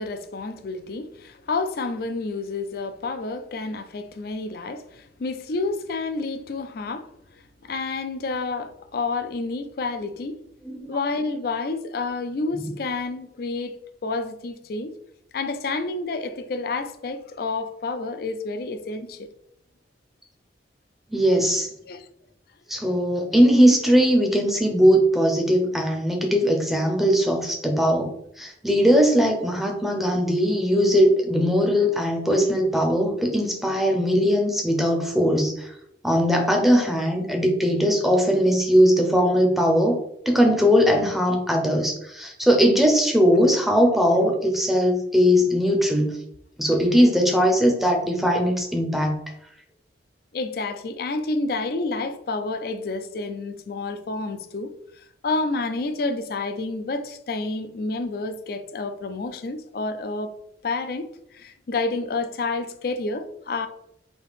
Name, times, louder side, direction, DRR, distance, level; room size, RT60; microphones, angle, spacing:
voice 1, 0.0-7.1 7.6-10.4 10.9-13.8 14.0-14.9 15.3-19.3 21.9-22.1 50.3-60.3 60.6-63.7, left 3 dB, 55° left, 0.4 m, -29 dB
voice 2, 10.6-11.0 12.6-12.7 21.1-21.7 22.7-28.1 28.4-35.7 36.0-40.0 40.3-46.2 46.6-49.2, equal, ahead, 0.6 m, -20 dB
4.1 x 2.7 x 3.5 m
head